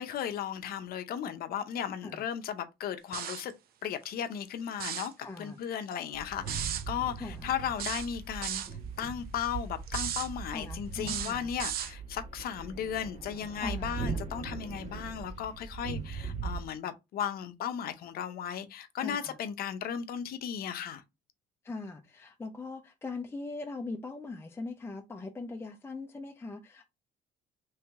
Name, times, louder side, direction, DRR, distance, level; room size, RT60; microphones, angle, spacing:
voice 1, 0.0-3.5 3.8-5.1 5.4-8.6 9.0-21.0, left 9 dB, 65° left, 0.7 m, -36 dB
sound 1, 3.1-3.5 4.7-5.1 6.5-6.8 7.8-8.7 9.9-10.3 11.0-11.9, right 10 dB, 65° right, 0.6 m, -35 dB
voice 2, 5.2-5.6 7.2-7.5 10.5-11.5 13.6-14.0 19.0-19.4 21.6-26.8, left 3 dB, 15° left, 0.5 m, -41 dB
sound 2, 6.1-16.7, right 5 dB, 45° right, 1.5 m, -40 dB
3.2 x 2.9 x 3.5 m
cardioid pair, 110°, 17 cm